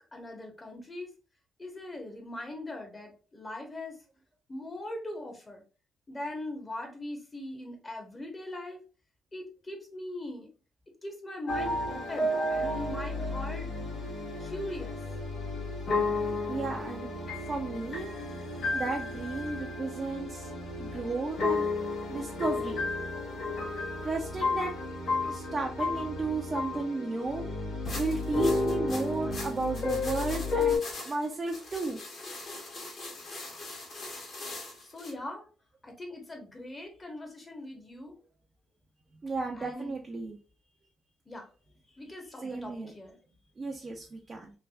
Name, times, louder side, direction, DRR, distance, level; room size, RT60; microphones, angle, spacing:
voice 1, 0.1-1.1 1.6-4.0 4.5-5.6 6.1-8.8 9.3-10.5 11.0-13.7 14.4-15.0 32.9-33.0 34.8-35.5 35.8-38.2 39.5-39.9 41.3-41.5 41.9-43.2, left 1 dB, 25° left, 3 dB, 1.0 m, -40 dB
sound 1, 11.5-30.8, left 2 dB, 70° left, 1.1 m, -32 dB
voice 2, 16.5-17.1 17.5-18.1 18.7-20.5 20.8-21.7 22.1-22.8 24.0-24.7 25.3-27.5 28.0-32.0 39.2-40.4 42.4-42.9 43.6-44.5, right 3 dB, 35° right, 0 dB, 0.5 m, -33 dB
sound 2, 27.8-35.1, left 2 dB, 55° left, 1.3 m, -42 dB
3.3 x 2.3 x 2.3 m, 0.35 s
cardioid pair, 90°, 0 cm